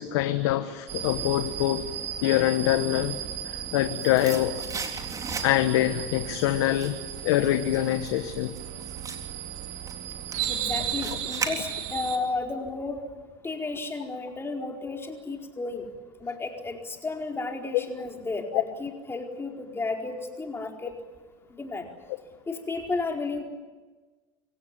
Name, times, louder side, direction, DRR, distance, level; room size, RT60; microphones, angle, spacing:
voice 1, 0.0-1.8 2.2-3.2 3.4-4.6 5.4-7.0 7.2-8.5 17.7-17.8 18.5-18.6, left 14 dB, 80° left, 9 dB, 1.3 m, -24 dB
sound 1, 0.9-12.2, right 10 dB, 65° right, 2.8 m, -35 dB
sound 2, 3.5-5.9 6.2-12.1 12.4-12.5, right 4 dB, 25° right, 3.7 m, -38 dB
voice 2, 10.5-13.0 13.4-15.8 16.2-20.9 21.6-21.8 22.5-23.4, left 3 dB, 20° left, 2 dB, 4.5 m, -33 dB
26.5 x 17.0 x 9.9 m, 1.3 s
supercardioid pair, 100°, 13 cm